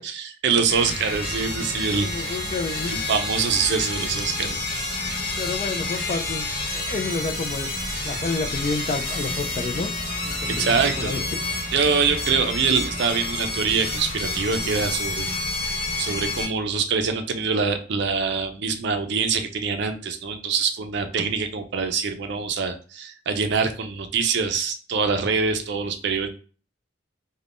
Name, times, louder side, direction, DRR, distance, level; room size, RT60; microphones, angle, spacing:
voice 1, 0.0-2.4 2.9-4.7 10.5-11.2 11.7-15.3 15.6-26.3, right 5 dB, 60° right, 7 dB, 0.4 m, -24 dB
sound 1, 0.7-16.5, left 2 dB, 50° left, 0.9 m, -29 dB
voice 2, 2.0-3.0 5.4-6.5 6.7-7.7 8.0-9.9 10.3-11.2, left 3 dB, 35° left, 6 dB, 0.3 m, -29 dB
3.4 x 2.2 x 2.4 m, 0.37 s
head